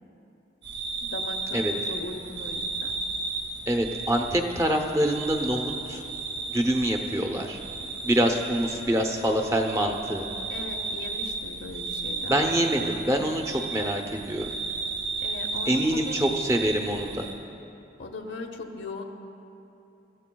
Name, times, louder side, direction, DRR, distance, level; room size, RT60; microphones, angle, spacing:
sound 1, 0.6-17.3, right 3 dB, 80° right, 2.3 m, -34 dB
voice 1, 1.0-3.0 8.3-8.4 10.5-13.0 15.2-16.3 18.0-19.0, left 2 dB, 90° left, 2 dB, 0.8 m, -39 dB
voice 2, 3.7-5.6 5.9-6.0 6.5-7.6 8.0-10.2 12.3-14.5 15.7-17.3, right 1 dB, 15° right, 3 dB, 0.7 m, -25 dB
23.0 x 14.0 x 2.3 m, 2.8 s
head